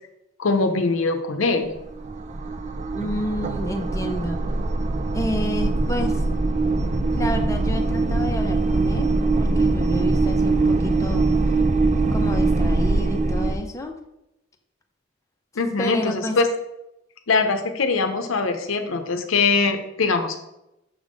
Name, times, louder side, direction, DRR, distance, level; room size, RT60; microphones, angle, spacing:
voice 1, 0.4-1.7 15.6-16.5 17.3-20.4, left 4 dB, 90° left, 7 dB, 0.7 m, -22 dB
sound 1, 1.6-13.5, right 3 dB, 35° right, 0.4 m, -22 dB
voice 2, 2.9-4.4 5.1-6.2 7.1-9.1 9.4-11.6 12.1-14.0 15.8-16.4, equal, 15° left, 3 dB, 0.7 m, -30 dB
6.3 x 3.6 x 5.1 m, 0.86 s
head